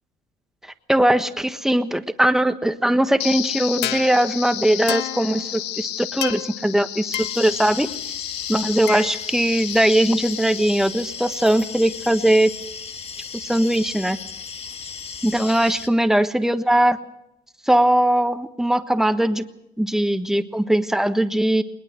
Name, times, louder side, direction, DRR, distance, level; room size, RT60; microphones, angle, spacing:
voice 1, 0.9-7.9 8.5-12.5 13.3-14.2 15.2-17.0 17.7-19.4 19.8-21.6, right 1 dB, 5° right, 9 dB, 1.4 m, -20 dB
sound 1, 3.2-12.2, left 13 dB, 85° left, 0.9 m, -31 dB
sound 2, 7.1-15.9, left 6 dB, 35° left, 1.4 m, -36 dB
21.0 x 20.5 x 6.5 m, 0.82 s
cardioid pair, 110°, 17 cm